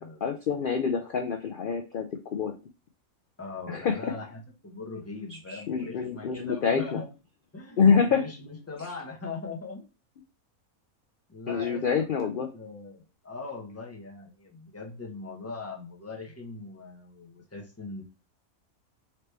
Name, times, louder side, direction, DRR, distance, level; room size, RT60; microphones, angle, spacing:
voice 1, 0.2-2.5 3.7-4.0 5.5-7.0 7.8-8.2 11.5-12.5, left 6 dB, 85° left, 5 dB, 0.4 m, -26 dB
voice 2, 3.4-7.1 7.5-9.8 11.3-18.0, left 3 dB, 15° left, 0 dB, 0.7 m, -40 dB
4.2 x 3.0 x 3.3 m, 0.31 s
omnidirectional pair, 1.5 m